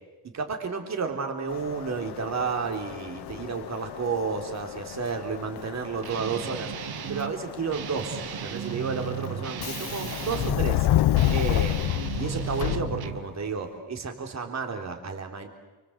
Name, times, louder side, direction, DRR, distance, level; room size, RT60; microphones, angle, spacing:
voice 1, 0.2-6.7 7.1-10.9 11.3-11.8 12.1-15.5, right 5 dB, 40° right, 4 dB, 3.8 m, -31 dB
Subway metro underground, 1.5-13.4, left 14 dB, 70° left, 0.8 m, -30 dB
Guitar, 6.0-7.3 7.7-10.7 11.1-13.3, right 11 dB, 60° right, 1.5 m, -35 dB
29.5 x 25.0 x 8.1 m, 1.2 s
cardioid pair, 155°, 41 cm